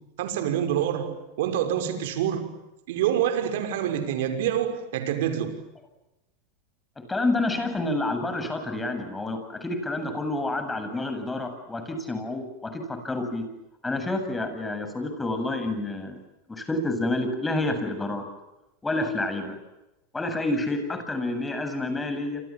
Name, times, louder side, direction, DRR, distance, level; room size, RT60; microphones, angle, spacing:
voice 1, 0.2-2.5 2.9-5.6, right 10 dB, 75° right, 6.1 m, -26 dB
voice 2, 7.1-13.4 13.8-16.1 16.5-18.2 18.8-19.6 20.1-22.4, left 2 dB, 10° left, 7.7 m, -28 dB
29.0 x 27.0 x 7.6 m
supercardioid pair, 130°, 0 cm